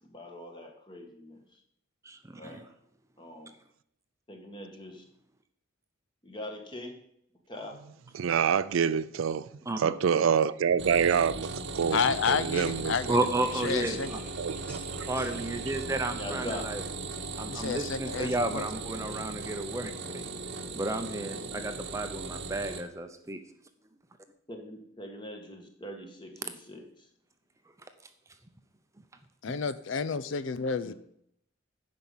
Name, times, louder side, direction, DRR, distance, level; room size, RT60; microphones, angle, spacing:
voice 1, 0.0-1.6 2.4-2.7 3.2-3.6 4.3-5.0 6.2-7.0 7.5-7.8 15.4-15.5 16.2-16.7 24.5-27.1 30.8-30.9, left 1 dB, 20° left, 1.5 m, -43 dB
voice 2, 2.0-2.6 9.7-9.9 13.1-14.2 15.1-16.8 17.4-20.2 20.7-23.4, right 2 dB, 15° right, 0.7 m, -32 dB
voice 3, 8.1-9.5 9.8-12.0 12.3-12.9 14.4-14.8, right 7 dB, 75° right, 0.4 m, -26 dB
sound 1, 10.8-22.8, right 3 dB, 55° right, 1.0 m, -38 dB
voice 4, 11.9-13.2 13.5-14.1 17.5-18.7 29.4-30.9, left 6 dB, 65° left, 0.5 m, -30 dB
sound 2, 12.1-22.8, left 1 dB, 5° left, 2.8 m, -55 dB
10.5 x 5.3 x 7.2 m
head